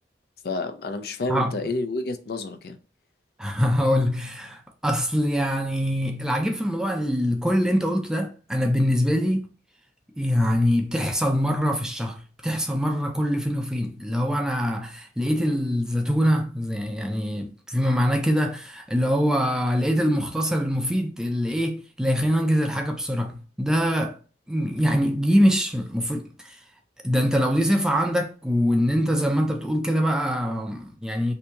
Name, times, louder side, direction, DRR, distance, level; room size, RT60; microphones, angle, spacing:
voice 1, 0.4-2.8, left 2 dB, 60° left, 0.4 m, -29 dB
voice 2, 3.4-9.5 10.2-24.2 24.5-26.6 27.0-31.3, equal, 5° right, 0.4 m, -24 dB
2.8 x 2.7 x 3.3 m
head